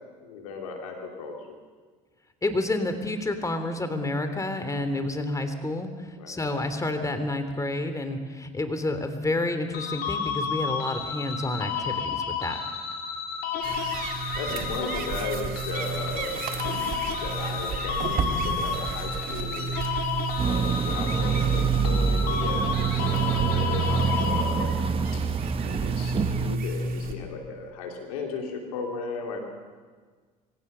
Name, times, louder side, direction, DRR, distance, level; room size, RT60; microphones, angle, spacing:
voice 1, 0.2-1.6 6.2-6.4 14.3-16.5 17.2-19.7 20.4-24.7 25.1-25.2 25.7-29.4, left 4 dB, 90° left, 2 dB, 3.1 m, -36 dB
voice 2, 2.4-12.6, left 2 dB, 20° left, 8 dB, 3.0 m, -29 dB
sound 1, 9.7-25.0, left 6 dB, 65° left, 3.4 m, -32 dB
sound 2, 13.6-27.1, right 6 dB, 55° right, 2.5 m, -31 dB
sound 3, 20.4-26.6, right 5 dB, 30° right, 1.1 m, -27 dB
24.5 x 16.5 x 6.8 m, 1.5 s
hypercardioid pair, 70°, 18 cm